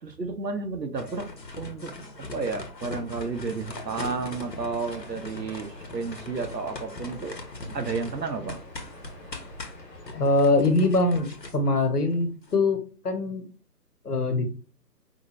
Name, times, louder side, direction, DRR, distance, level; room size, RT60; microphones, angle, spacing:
voice 1, 0.0-1.3 1.6-1.9 2.3-7.4 7.7-8.6, right 4 dB, 85° right, 7 dB, 1.1 m, -32 dB
sound 1, 1.0-12.6, left 2 dB, 85° left, 1.3 m, -41 dB
sound 2, 3.3-10.4, left 1 dB, 25° left, 1.4 m, -47 dB
voice 2, 10.1-11.3 11.5-13.4 14.0-14.5, left 2 dB, 70° left, 7 dB, 1.2 m, -23 dB
4.9 x 3.0 x 3.1 m, 0.36 s
figure-of-eight pair, 145°, 48 cm